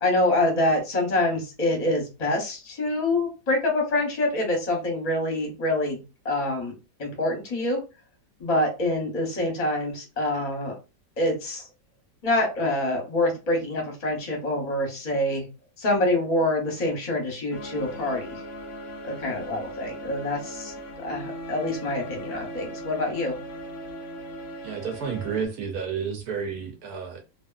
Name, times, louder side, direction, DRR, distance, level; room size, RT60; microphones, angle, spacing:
voice 1, 0.0-6.7 7.0-7.8 8.4-10.7 11.2-11.7 12.2-15.5 15.8-18.4 19.0-23.4, left 1 dB, 30° left, 0.8 m, -26 dB
sound 1, 17.5-25.5, equal, 85° left, 0.5 m, -38 dB
voice 2, 24.6-27.2, right 6 dB, 70° right, 1.0 m, -31 dB
2.7 x 2.4 x 2.3 m
omnidirectional pair, 1.9 m